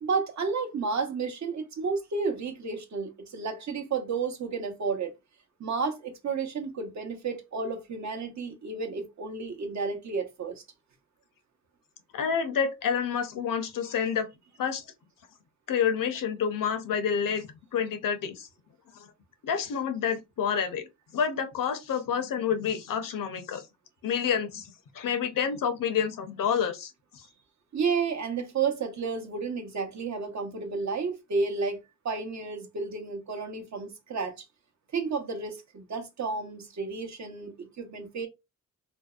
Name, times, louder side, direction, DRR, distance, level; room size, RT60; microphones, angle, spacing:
voice 1, 0.0-5.1 5.6-10.6 27.7-34.5 34.9-38.3, right 4 dB, 50° right, 0.8 m, -31 dB
voice 2, 12.1-14.3 14.6-14.8 15.7-18.5 19.0-19.1 19.4-20.9 21.1-23.6 24.0-27.2, left 7 dB, 65° left, 0.6 m, -29 dB
2.6 x 2.0 x 2.3 m
supercardioid pair, 55°, 35 cm